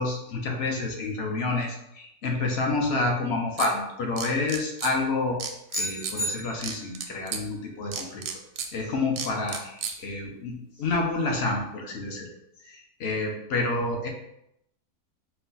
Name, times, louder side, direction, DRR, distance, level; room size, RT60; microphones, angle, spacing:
voice 1, 0.0-5.4 5.8-8.2 8.7-12.3 12.6-14.1, left 3 dB, 60° left, 1 dB, 0.7 m, -29 dB
sound 1, 3.6-3.7 4.2-4.9 5.4-6.2 6.6-7.4 7.9-8.7 9.2-10.0, right 7 dB, 70° right, 0.8 m, -32 dB
sound 2, 5.7-7.1, left 1 dB, 30° left, 0.3 m, -33 dB
4.5 x 2.2 x 3.8 m, 0.81 s
omnidirectional pair, 1.7 m